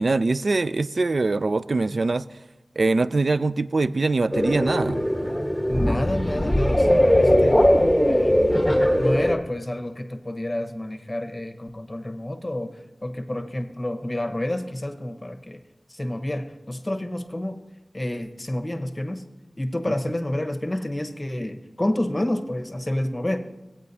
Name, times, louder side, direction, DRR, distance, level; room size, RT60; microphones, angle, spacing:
voice 1, 0.0-2.3 2.8-5.0, right 3 dB, 70° right, 15 dB, 0.3 m, -23 dB
sound 1, 4.3-9.4, equal, ahead, 1.4 m, -20 dB
voice 2, 5.7-8.7 9.0-15.6 15.9-17.6 17.9-19.2 19.6-23.4, left 1 dB, 30° left, 7 dB, 0.9 m, -29 dB
16.0 x 8.6 x 2.7 m, 1.0 s
wide cardioid pair, 50°, 0 cm